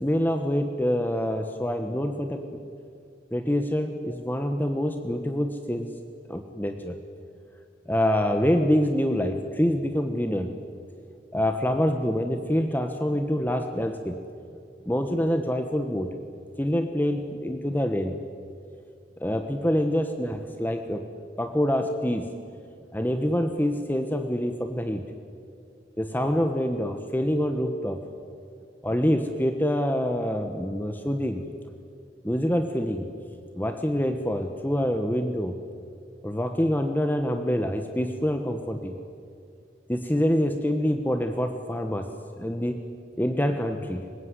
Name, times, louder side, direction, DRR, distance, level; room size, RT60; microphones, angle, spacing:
voice 1, 0.0-2.4 3.3-5.9 6.3-7.0 7.9-10.6 11.3-14.2 14.8-16.1 16.6-18.1 19.2-21.0 21.4-22.3 22.9-25.0 26.0-28.1 28.8-31.4 32.2-33.1 33.5-35.6 36.2-39.0 39.9-42.1 42.4-42.8 43.2-44.1, equal, 10° left, 6 dB, 1.2 m, -26 dB
25.0 x 21.5 x 9.9 m, 2.4 s
head